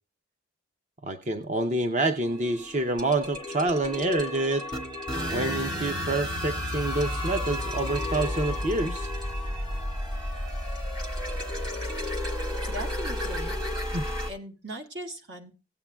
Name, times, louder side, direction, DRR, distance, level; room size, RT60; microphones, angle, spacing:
voice 1, 1.0-4.6 5.3-9.1 13.9-14.0, right 2 dB, 40° right, 7 dB, 0.6 m, -27 dB
sound 1, 2.2-14.3, left 1 dB, 25° right, 1.5 m, -32 dB
voice 2, 12.7-13.6 14.3-15.5, right 1 dB, 70° right, 1 dB, 1.7 m, -39 dB
17.0 x 8.6 x 2.2 m, 0.34 s
head